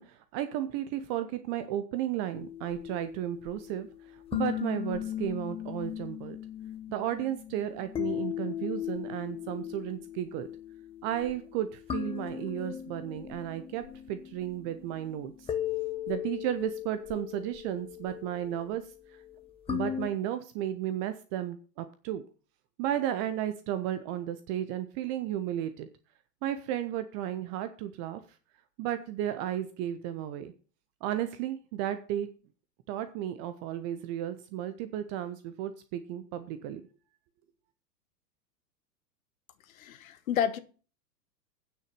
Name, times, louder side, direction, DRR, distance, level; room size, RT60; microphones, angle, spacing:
voice 1, 0.0-3.9 4.1-6.4 6.9-10.5 11.0-15.5 16.1-18.8 19.7-22.2 22.8-25.9 26.4-28.2 28.8-30.5 31.0-32.3 32.9-36.8, right 11 dB, 20° right, 0.5 m, -34 dB
sound 1, 2.3-20.1, left 10 dB, 10° left, 0.8 m, -38 dB
voice 2, 39.7-40.6, left 9 dB, 55° left, 1.3 m, -30 dB
9.1 x 6.4 x 6.5 m
figure-of-eight pair, 100°, 49 cm